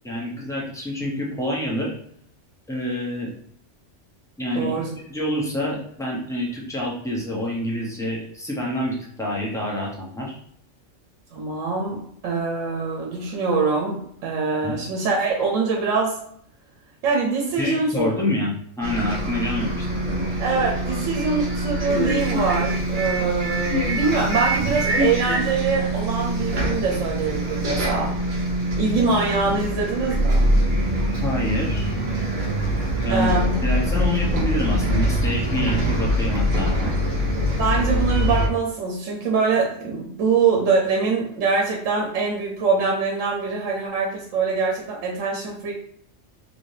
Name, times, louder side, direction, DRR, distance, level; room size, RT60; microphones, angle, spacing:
voice 1, 0.0-1.9 2.7-3.3 4.4-10.4 14.6-14.8 17.6-20.3 31.2-31.9 33.0-33.3 33.6-36.9, equal, 5° left, -4 dB, 0.7 m, -27 dB
voice 2, 4.5-4.9 11.3-16.2 17.0-18.1 20.4-28.2 28.8-30.6 33.1-33.6 37.6-45.7, right 4 dB, 80° right, -1 dB, 1.0 m, -24 dB
Bus, 18.8-38.5, equal, 45° right, 0.8 m, -23 dB
3.3 x 2.8 x 2.7 m, 0.66 s
omnidirectional pair, 1.3 m